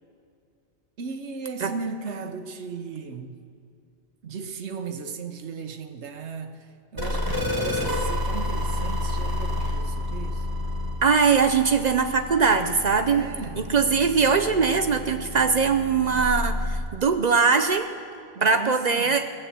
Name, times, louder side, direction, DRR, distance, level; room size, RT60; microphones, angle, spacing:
voice 1, 1.0-3.4 4.2-10.5 12.9-13.7 18.3-19.2, right 5 dB, 85° right, 1.2 m, -36 dB
sound 1, 7.0-16.8, left 1 dB, 20° right, 1.7 m, -30 dB
voice 2, 11.0-13.2 13.7-17.9 18.4-19.2, right 5 dB, 50° right, 0.6 m, -21 dB
17.5 x 7.5 x 8.1 m
omnidirectional pair, 1.1 m